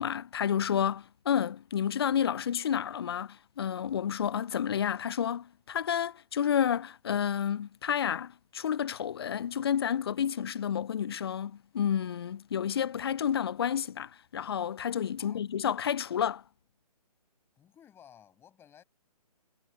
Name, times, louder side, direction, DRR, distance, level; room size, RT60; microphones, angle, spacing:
voice 1, 0.0-16.4, left 8 dB, 40° left, 0.4 m, -30 dB
voice 2, 17.6-18.8, left 9 dB, 10° left, 5.9 m, -56 dB
figure-of-eight pair, 140°, 20 cm